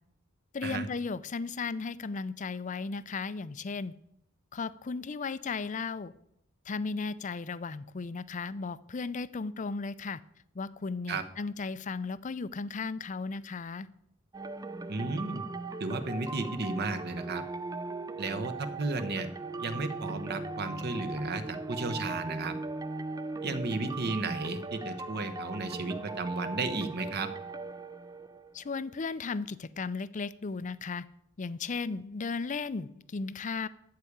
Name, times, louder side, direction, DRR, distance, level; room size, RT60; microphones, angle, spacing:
voice 1, 0.5-3.9 4.5-6.1 6.7-10.2 10.5-13.9 28.5-31.0 31.4-33.7, left 4 dB, 40° left, 16 dB, 0.5 m, -35 dB
sound 1, 14.3-28.8, right 2 dB, 20° right, 0.4 m, -39 dB
voice 2, 14.9-15.4 15.8-17.4 18.2-19.3 19.6-22.5 23.4-27.3, right 3 dB, 50° right, 9 dB, 1.0 m, -33 dB
13.5 x 4.8 x 8.5 m, 0.77 s
head